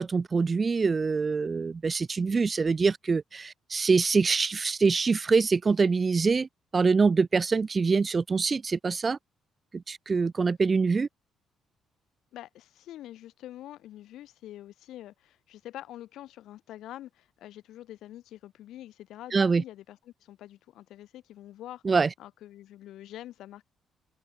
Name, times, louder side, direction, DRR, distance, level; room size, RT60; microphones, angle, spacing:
voice 1, 0.0-6.5 6.7-9.2 9.7-11.1 19.3-19.6 21.8-22.1, right 4 dB, 35° right, 0.9 m, -24 dB
voice 2, 12.3-21.8 22.2-23.6, left 13 dB, 80° left, 4.4 m, -45 dB
open air
cardioid pair, 90°, 0 cm